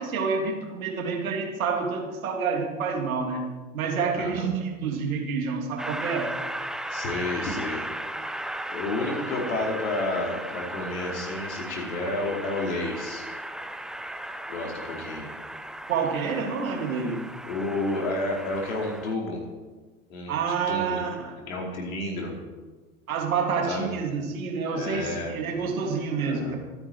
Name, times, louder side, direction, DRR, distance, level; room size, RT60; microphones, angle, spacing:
voice 1, 0.0-3.4 3.7-6.3 15.9-17.2 20.3-21.3 23.1-26.6, right 5 dB, 75° right, 1 dB, 3.3 m, -28 dB
voice 2, 4.2-4.5 6.9-7.8 8.7-13.2 14.5-15.3 17.5-19.4 20.1-21.0 21.5-22.4 23.7-23.9 24.7-25.3 26.2-26.6, left 2 dB, 70° left, 0 dB, 4.7 m, -30 dB
Train, 5.8-19.1, right 1 dB, ahead, 0.5 m, -36 dB
24.0 x 10.0 x 4.8 m, 1.3 s
figure-of-eight pair, 85°, 42 cm